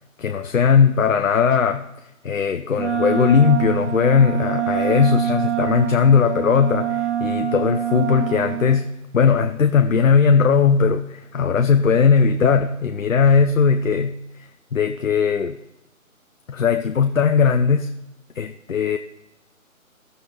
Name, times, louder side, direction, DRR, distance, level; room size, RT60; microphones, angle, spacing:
voice 1, 0.2-1.9 2.2-14.2 14.7-15.6 16.5-17.9 18.4-19.0, left 6 dB, 65° left, 7 dB, 0.7 m, -18 dB
Wind instrument woodwind instrument, 2.8-8.8, right 10 dB, 55° right, 0.8 m, -25 dB
21.5 x 11.0 x 2.9 m, 0.96 s
figure-of-eight pair, 155°, 42 cm